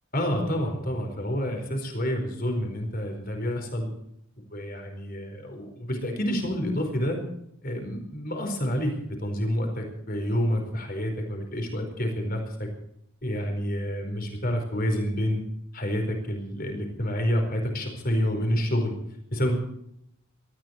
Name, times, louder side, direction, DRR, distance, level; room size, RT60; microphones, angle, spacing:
voice 1, 0.1-3.9 4.5-7.2 7.6-8.9 9.2-12.7 13.2-15.4 15.7-18.9 19.3-19.6, equal, 45° left, 4 dB, 4.6 m, -28 dB
19.5 x 14.0 x 4.7 m, 0.74 s
head